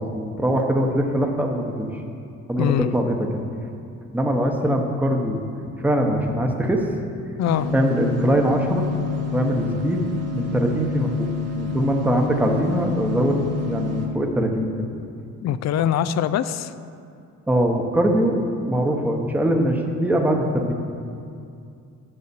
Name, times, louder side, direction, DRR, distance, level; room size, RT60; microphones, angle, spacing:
voice 1, 0.0-1.9 2.5-3.4 4.1-5.4 5.8-7.0 7.7-8.8 9.3-11.3 11.5-14.7 17.5-20.7, right 1 dB, 5° right, 2 dB, 0.9 m, -22 dB
voice 2, 2.6-2.9 7.4-7.7 15.4-16.7, left 10 dB, 65° left, 13 dB, 0.4 m, -22 dB
sound 1, 7.5-14.1, left 4 dB, 55° right, 1.2 m, -28 dB
6.8 x 6.6 x 6.9 m, 2.4 s
cardioid pair, 90°, 30 cm